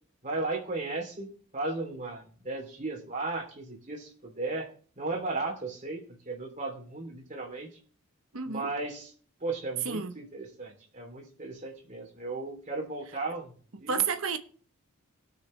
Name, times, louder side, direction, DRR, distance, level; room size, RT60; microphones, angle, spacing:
voice 1, 0.2-1.3 1.5-4.7 5.0-7.7 8.5-9.1 9.4-13.5 13.8-14.0, right 3 dB, 35° right, 3.0 m, -35 dB
voice 2, 8.3-8.7 9.8-10.1 13.9-14.4, right 6 dB, 70° right, 1.0 m, -30 dB
20.0 x 6.7 x 3.2 m
head